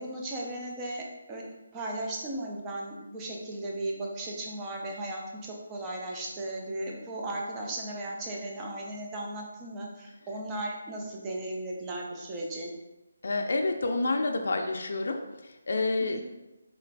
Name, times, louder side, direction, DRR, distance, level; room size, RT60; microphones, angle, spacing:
voice 1, 0.0-1.4 1.7-12.7 16.0-16.2, right 1 dB, 10° right, -1 dB, 0.4 m, -36 dB
voice 2, 13.2-16.2, left 2 dB, 60° left, 3 dB, 0.4 m, -29 dB
3.8 x 2.4 x 3.3 m, 1.0 s
hypercardioid pair, 175°, 0 cm